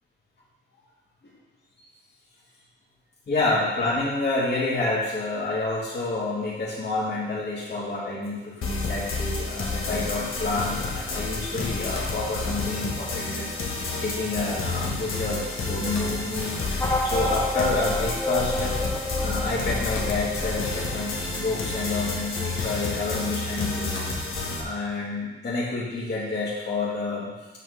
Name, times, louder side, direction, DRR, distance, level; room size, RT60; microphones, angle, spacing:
voice 1, 3.3-18.7 19.2-23.9 24.6-27.4, left 3 dB, 55° left, -8 dB, 2.0 m, -29 dB
sound 1, 8.6-24.6, left 3 dB, 85° left, 1.1 m, -30 dB
sound 2, 16.8-21.7, left 1 dB, 10° left, 0.7 m, -30 dB
7.9 x 4.0 x 6.4 m, 1.2 s
wide cardioid pair, 150°, 21 cm